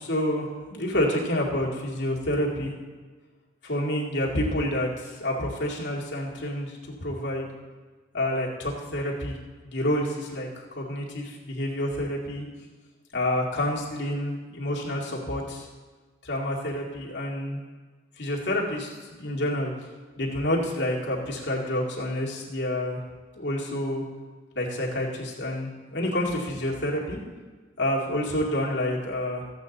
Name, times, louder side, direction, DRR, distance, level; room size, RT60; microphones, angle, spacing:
voice 1, 0.0-2.7 3.6-7.5 8.1-9.4 9.6-12.5 13.1-15.7 16.2-17.6 18.2-19.7 20.2-23.0 23.4-24.0 24.6-27.2 27.8-29.4, left 1 dB, 70° left, -3 dB, 2.1 m, -28 dB
14.0 x 8.2 x 4.1 m, 1.4 s
head